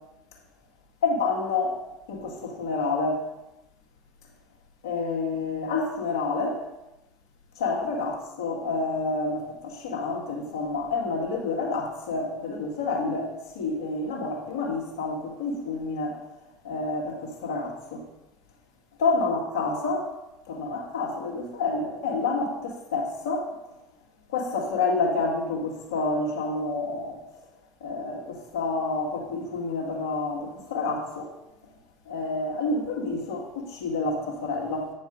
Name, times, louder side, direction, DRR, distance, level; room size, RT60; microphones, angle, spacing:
voice 1, 1.0-1.8 2.1-3.2 4.8-6.6 7.6-16.2 16.6-18.0 19.0-20.1 20.5-23.5 24.3-27.2 27.8-31.3 32.1-34.9, left 3 dB, 85° left, -2 dB, 2.0 m, -28 dB
9.1 x 5.2 x 5.1 m, 0.96 s
hypercardioid pair, 85°, 2 cm